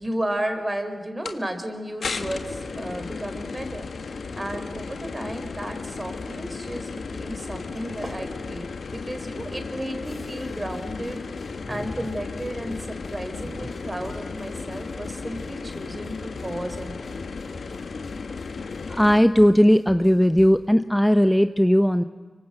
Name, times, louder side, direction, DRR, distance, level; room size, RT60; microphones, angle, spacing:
voice 1, 0.0-3.8 4.3-11.2 11.7-17.2, right 1 dB, 25° right, 8 dB, 4.4 m, -33 dB
sound 1, 1.2-1.4 2.0-19.2, left 4 dB, 75° left, 1.6 m, -35 dB
sound 2, 10.0-20.7, left 3 dB, 55° left, 3.3 m, -46 dB
voice 2, 19.0-22.0, equal, 5° left, 10 dB, 0.9 m, -17 dB
25.0 x 25.0 x 8.1 m, 1.4 s
cardioid pair, 45°, 0 cm